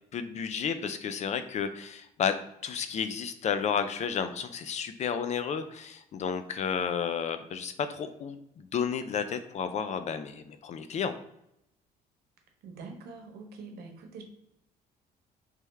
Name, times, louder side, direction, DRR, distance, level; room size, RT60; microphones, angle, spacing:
voice 1, 0.1-2.4 2.6-11.1, left 7 dB, 45° left, 10 dB, 0.4 m, -32 dB
voice 2, 12.6-14.2, right 4 dB, 70° right, 3 dB, 1.0 m, -44 dB
3.3 x 3.3 x 3.2 m, 0.80 s
cardioid pair, 110°, 17 cm